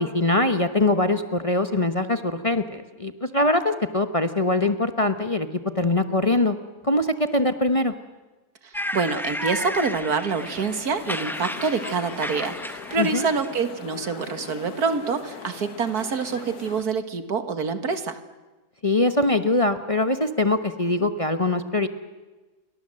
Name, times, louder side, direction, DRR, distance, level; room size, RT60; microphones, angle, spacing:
voice 1, 0.0-5.5 5.8-6.6 6.8-7.9 13.0-13.3 18.8-21.9, left 2 dB, 25° left, 8 dB, 1.1 m, -22 dB
voice 2, 8.6-18.2, right 5 dB, 75° right, 9 dB, 2.2 m, -26 dB
sound 1, 8.7-13.6, equal, ahead, 0.6 m, -33 dB
sound 2, 10.3-16.8, left 6 dB, 80° left, 1.9 m, -40 dB
29.5 x 23.5 x 7.8 m, 1.2 s
omnidirectional pair, 1.6 m